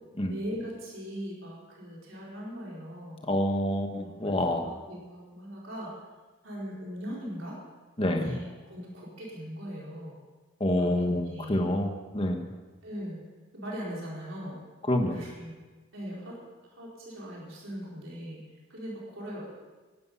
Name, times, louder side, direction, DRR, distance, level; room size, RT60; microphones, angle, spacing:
voice 1, 0.3-3.2 3.9-6.0 6.4-7.6 8.0-10.2 10.8-11.6 12.8-13.2 13.5-14.6 15.1-15.5 15.9-16.4 16.8-18.4 18.7-19.5, equal, 60° right, -4 dB, 4.7 m, -40 dB
voice 2, 3.2-4.6 8.0-8.3 10.6-12.5 14.9-15.2, left 1 dB, 25° left, 3 dB, 1.4 m, -27 dB
15.5 x 12.0 x 5.6 m, 1.3 s
head